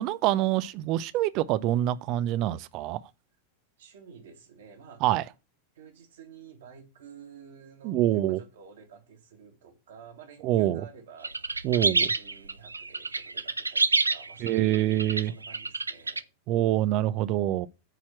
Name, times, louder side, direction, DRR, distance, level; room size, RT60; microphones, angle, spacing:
voice 1, 0.0-3.0 5.0-5.2 7.8-8.4 10.4-10.8 11.6-12.1 14.4-15.3 16.5-17.7, right 14 dB, 40° right, 0.7 m, -25 dB
voice 2, 3.8-5.0 5.7-16.3, right 6 dB, 60° right, 2.1 m, -50 dB
sound 1, 11.2-16.2, right 3 dB, 80° right, 0.5 m, -28 dB
9.2 x 4.4 x 7.4 m
figure-of-eight pair, 90°, 0 cm